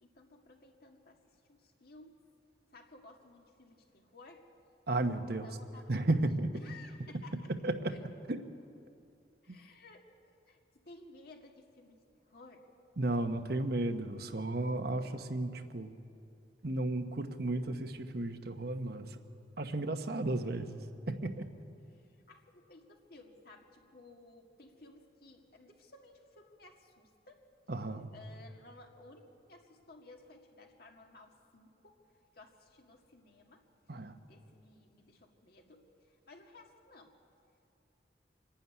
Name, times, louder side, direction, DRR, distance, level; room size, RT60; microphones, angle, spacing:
voice 1, 0.0-2.2 2.7-4.5 5.2-5.9 6.6-7.5 7.9-8.0 9.4-10.0 10.5-12.0 12.3-12.7 21.9-27.4 28.1-32.0 32.3-33.7 34.3-37.2, left 2 dB, 55° left, 2 dB, 2.1 m, -57 dB
voice 2, 4.9-5.5 5.9-6.5 7.6-7.9 8.3-8.4 9.5-9.6 13.0-15.9 16.6-19.2 19.6-20.8 21.1-21.5 27.7-28.1 33.9-34.1, right 2 dB, 55° right, 7 dB, 1.1 m, -33 dB
25.5 x 12.0 x 9.6 m, 2.5 s
head